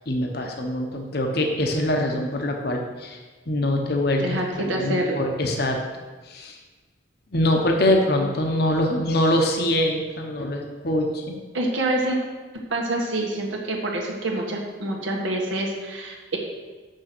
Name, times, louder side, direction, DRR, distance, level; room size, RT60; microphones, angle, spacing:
voice 1, 0.1-3.2 3.5-5.8 6.2-6.6 7.3-11.4, left 1 dB, 50° left, 2 dB, 1.0 m, -24 dB
voice 2, 4.2-5.2 11.5-12.2 12.7-16.4, right 1 dB, 80° right, -1 dB, 1.5 m, -26 dB
7.6 x 6.5 x 6.1 m, 1.3 s
head